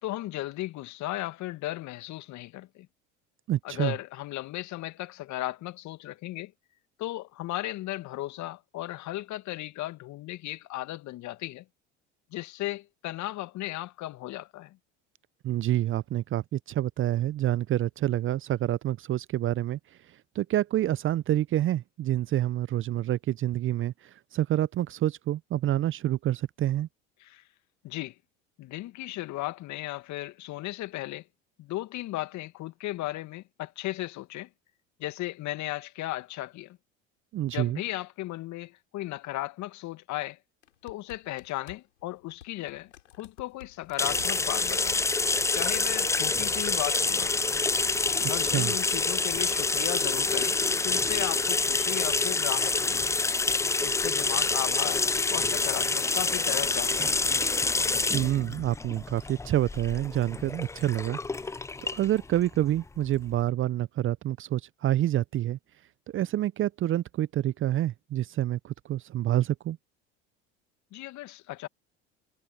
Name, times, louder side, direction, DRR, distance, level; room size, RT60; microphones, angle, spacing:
voice 1, 0.0-2.9 3.6-6.5 7.0-11.6 12.3-14.8 27.2-27.4 27.8-28.1 28.6-31.2 31.6-34.5 35.0-36.8 37.5-40.4 40.8-42.9 43.2-45.0 45.5-47.4 48.3-53.3 53.8-57.2 70.9-71.7, left 16 dB, 50° left, 2.1 m, -36 dB
voice 2, 3.5-3.9 15.4-19.8 20.4-26.9 37.3-37.8 48.2-48.7 58.1-61.2 61.8-65.6 66.1-69.8, right 13 dB, 35° right, 0.6 m, -27 dB
sound 1, 40.6-52.6 52.8-53.9 54.2-54.9 55.9-56.1 56.9-57.6 58.5-58.6, left 11 dB, 80° left, 7.1 m, -56 dB
sound 2, 44.0-63.4, left 3 dB, 10° left, 0.5 m, -27 dB
hypercardioid pair, 70°, 35 cm